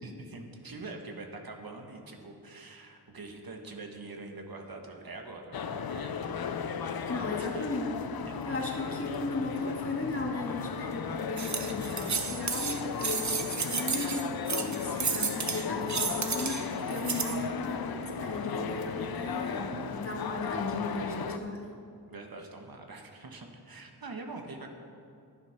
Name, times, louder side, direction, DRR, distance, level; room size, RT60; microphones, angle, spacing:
voice 1, 0.0-6.4 7.0-7.7 8.3-8.4 22.1-24.7, right 3 dB, 60° right, 3 dB, 1.4 m, -44 dB
sound 1, 5.5-21.4, left 7 dB, 65° left, 0.6 m, -36 dB
voice 2, 7.1-7.9 8.5-21.7, left 2 dB, 35° left, 0 dB, 1.8 m, -36 dB
sound 2, 11.4-17.4, right 5 dB, 45° right, 0.8 m, -32 dB
11.5 x 9.3 x 5.8 m, 2.6 s
wide cardioid pair, 80°, 39 cm